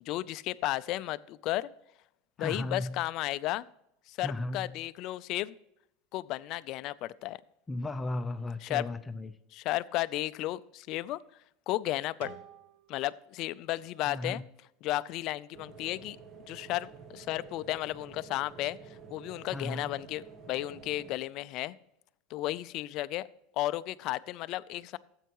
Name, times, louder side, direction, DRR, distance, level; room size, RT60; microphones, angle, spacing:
voice 1, 0.1-1.7 2.4-3.6 4.1-5.5 6.1-7.4 8.7-8.8 9.5-11.2 11.7-12.3 12.9-14.4 14.8-16.2 16.5-18.8 19.1-21.7 22.3-23.3 23.6-25.0, left 16 dB, 55° left, 16 dB, 0.5 m, -33 dB
voice 2, 2.4-3.0 4.2-4.8 7.7-9.4 14.1-14.4 19.5-20.0, left 2 dB, 15° left, 9 dB, 0.7 m, -36 dB
sound 1, 12.2-15.0, right 6 dB, 80° right, 1.2 m, -52 dB
sound 2, 15.5-21.1, right 6 dB, 40° right, 1.1 m, -50 dB
13.5 x 8.1 x 3.0 m, 0.79 s
supercardioid pair, 115°, 0 cm